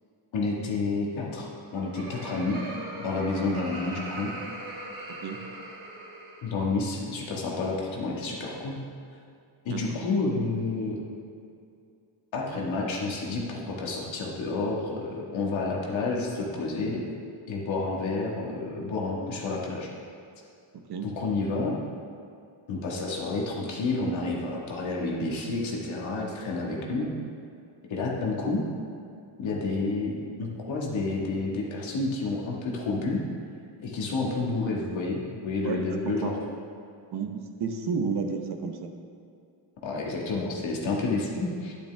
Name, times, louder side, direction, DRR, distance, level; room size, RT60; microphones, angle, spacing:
voice 1, 0.3-2.6 3.0-4.3 6.4-8.8 9.7-11.0 12.3-17.0 17.5-19.9 21.0-21.8 22.7-27.1 27.9-28.6 29.4-33.2 33.8-36.3 39.8-41.7, left 3 dB, 70° left, -3 dB, 1.7 m, -30 dB
Laughter, 1.5-6.7, right 1 dB, 85° right, 2.4 m, -40 dB
voice 2, 5.1-5.4 9.7-10.0 20.7-21.1 35.6-36.4 37.1-38.9, right 5 dB, 50° right, 5 dB, 1.0 m, -32 dB
10.5 x 9.2 x 3.4 m, 2.5 s
cardioid pair, 115°, 49 cm